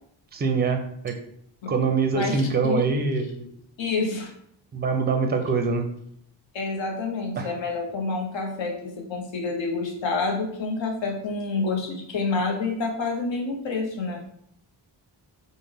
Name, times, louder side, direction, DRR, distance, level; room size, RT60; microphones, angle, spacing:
voice 1, 0.3-1.2 1.7-3.5 4.7-5.9 7.4-7.5, right 4 dB, 20° right, 6 dB, 0.4 m, -24 dB
voice 2, 2.1-2.9 3.8-4.3 6.5-14.2, left 3 dB, 70° left, 1 dB, 0.8 m, -28 dB
3.2 x 2.1 x 3.5 m, 0.71 s
cardioid pair, 75°, 47 cm